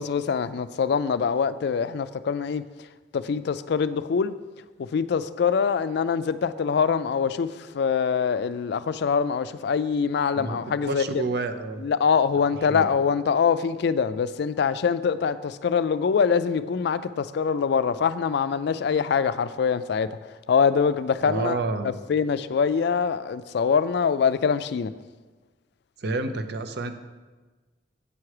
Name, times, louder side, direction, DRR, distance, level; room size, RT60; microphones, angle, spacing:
voice 1, 0.0-2.9 3.1-4.3 4.8-11.2 11.8-21.6 22.1-24.9, left 6 dB, 65° left, 0.4 m, -24 dB
voice 2, 10.3-11.8 12.7-12.9 21.2-22.0 26.0-26.9, right 3 dB, 65° right, 0.7 m, -29 dB
8.4 x 5.8 x 4.8 m
head